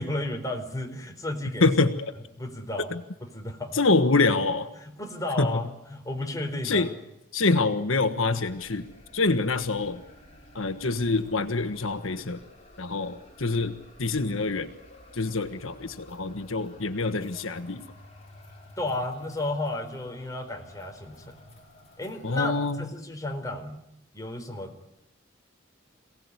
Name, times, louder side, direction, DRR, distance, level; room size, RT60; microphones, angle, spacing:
voice 1, 0.0-1.6 2.4-2.9 3.3-3.8 4.8-6.9 7.5-7.6 18.8-21.3 22.0-23.8 24.1-24.7, left 2 dB, 15° left, 3 dB, 4.1 m, -33 dB
voice 2, 1.6-2.1 2.9-3.0 3.7-4.7 5.4-5.6 6.6-6.9 7.3-8.9 9.1-10.0 10.5-12.4 12.8-14.7 15.1-17.8 22.2-22.8, left 3 dB, 90° left, 9 dB, 1.4 m, -25 dB
sound 1, 8.3-22.5, left 1 dB, 35° left, 5.8 m, -52 dB
27.5 x 18.0 x 9.8 m, 0.86 s
head